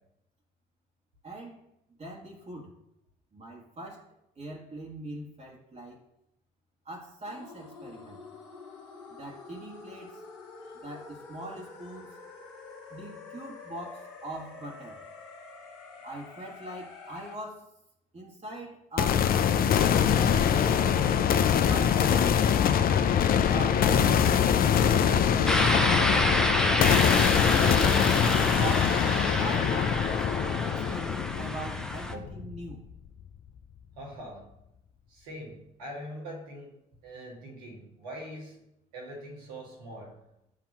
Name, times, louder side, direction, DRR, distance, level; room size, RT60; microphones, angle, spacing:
voice 1, 1.2-1.6 2.0-2.7 3.3-4.1 4.4-6.0 6.8-8.2 9.1-10.2 10.8-12.1 12.9-15.0 16.0-17.7 18.1-19.3 20.1-21.3 21.6-22.7 23.4-26.7 27.5-28.1 28.4-29.0 29.4-32.9, right 1 dB, 35° right, -1 dB, 1.4 m, -41 dB
sound 1, 7.2-17.4, left 4 dB, 80° left, 1.1 m, -47 dB
sound 2, 19.0-32.9, left 8 dB, 50° left, 0.5 m, -24 dB
sound 3, 25.5-32.1, left 1 dB, 5° left, 0.6 m, -28 dB
voice 2, 34.0-34.6 35.1-36.8 37.0-38.6 38.9-40.2, right 1 dB, 85° right, -2 dB, 1.7 m, -43 dB
7.4 x 2.9 x 6.0 m, 0.84 s
hypercardioid pair, 60°, 20 cm